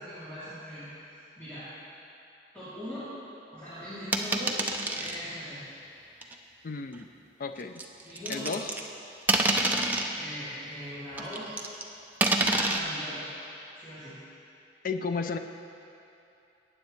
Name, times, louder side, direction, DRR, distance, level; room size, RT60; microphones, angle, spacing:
voice 1, 0.0-1.7 2.5-3.1 3.5-4.6 4.9-5.6 8.0-8.6 10.1-11.7 12.5-13.2 13.7-14.2, equal, 10° left, -17 dB, 3.0 m, -40 dB
sound 1, 4.1-5.2 6.2-6.3 7.8-8.9 9.3-10.1 11.2-11.8 12.2-12.8, right 2 dB, 10° right, 0.5 m, -27 dB
voice 2, 6.6-7.1 7.4-7.8 8.3-8.7 14.8-15.4, left 4 dB, 50° left, 7 dB, 0.5 m, -33 dB
18.5 x 9.0 x 3.3 m, 2.8 s
head